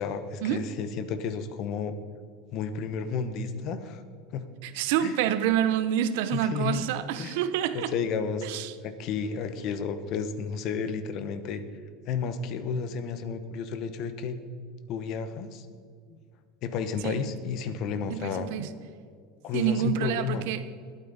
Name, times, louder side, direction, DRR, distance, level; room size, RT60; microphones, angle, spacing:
voice 1, 0.0-2.0 2.5-4.0 4.3-4.4 5.0-5.2 6.3-6.8 7.2-7.4 7.7-8.5 8.8-11.6 12.0-14.4 14.9-15.7 16.1-16.2 16.6-18.5 19.4-20.4, left 6 dB, 45° left, 10 dB, 1.0 m, -32 dB
voice 2, 4.6-7.9 8.4-8.7 17.0-17.2 18.1-18.7 19.5-20.6, right 10 dB, 70° right, 13 dB, 0.8 m, -27 dB
20.5 x 9.2 x 4.1 m, 2.1 s
supercardioid pair, 155°, 0 cm